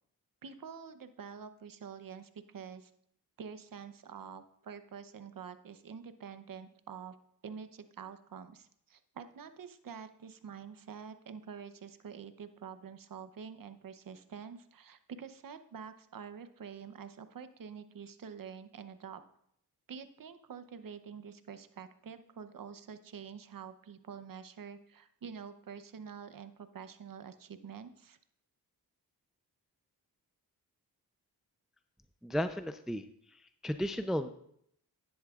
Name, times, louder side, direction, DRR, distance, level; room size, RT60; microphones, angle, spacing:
voice 1, 0.4-2.9 3.4-7.1 7.4-19.2 19.9-28.2, right 6 dB, 55° right, 11 dB, 0.8 m, -47 dB
voice 2, 32.2-33.0 33.6-34.3, equal, ahead, 9 dB, 0.5 m, -33 dB
11.5 x 10.0 x 2.4 m, 0.70 s
cardioid pair, 60°, 39 cm